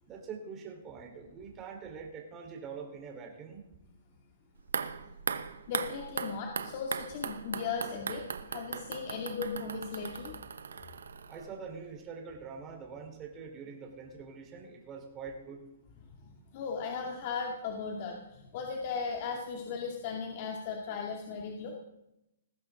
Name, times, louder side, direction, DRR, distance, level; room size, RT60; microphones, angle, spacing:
voice 1, 0.1-3.7 11.3-15.6, right 5 dB, 25° right, 2 dB, 4.0 m, -44 dB
sound 1, 4.6-11.7 12.0-12.1, right 6 dB, 80° right, 1.0 m, -38 dB
voice 2, 5.7-10.3 16.1-16.2 16.5-21.8, left 5 dB, 45° left, 0 dB, 2.4 m, -37 dB
19.5 x 15.0 x 3.9 m, 0.86 s
hypercardioid pair, 135°, 0 cm